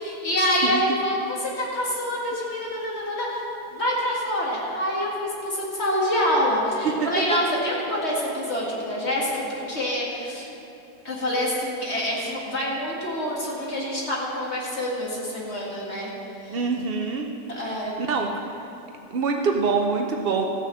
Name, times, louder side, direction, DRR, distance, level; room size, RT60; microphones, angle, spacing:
voice 1, 0.0-3.4 3.7-10.5 11.0-16.1 16.4-16.6 17.5-18.1, left 1 dB, 40° left, -4 dB, 2.3 m, -26 dB
voice 2, 16.5-17.3 17.6-18.3 19.1-20.4, right 5 dB, 65° right, 2 dB, 0.5 m, -25 dB
14.0 x 6.4 x 7.6 m, 2.8 s
omnidirectional pair, 1.8 m